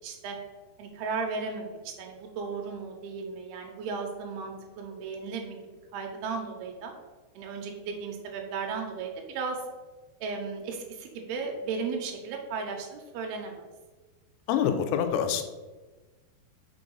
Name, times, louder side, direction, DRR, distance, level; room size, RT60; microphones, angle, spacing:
voice 1, 0.0-0.4 0.8-5.6 5.9-6.9 7.4-9.6 10.2-13.6, right 5 dB, 85° right, 2 dB, 2.7 m, -35 dB
voice 2, 14.5-15.4, left 8 dB, 85° left, 7 dB, 2.6 m, -26 dB
6.1 x 3.9 x 5.4 m, 1.2 s
omnidirectional pair, 4.3 m